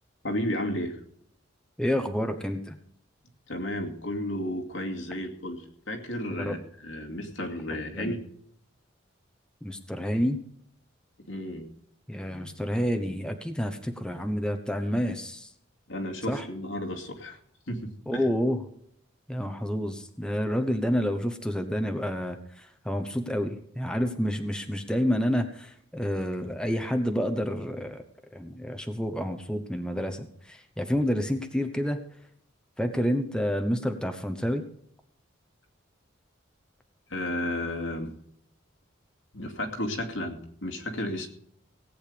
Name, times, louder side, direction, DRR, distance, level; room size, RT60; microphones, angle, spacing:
voice 1, 0.2-1.0 3.5-8.2 11.3-11.7 15.9-17.4 17.7-18.3 37.1-38.1 39.3-41.3, left 1 dB, 80° left, 3 dB, 2.4 m, -33 dB
voice 2, 1.8-2.8 6.4-6.6 7.9-8.2 9.6-10.4 12.1-15.5 16.3-16.5 18.1-18.6 19.3-28.0 28.3-32.0 32.8-34.6, equal, 5° left, 6 dB, 1.0 m, -29 dB
18.0 x 8.9 x 5.1 m, 0.68 s
head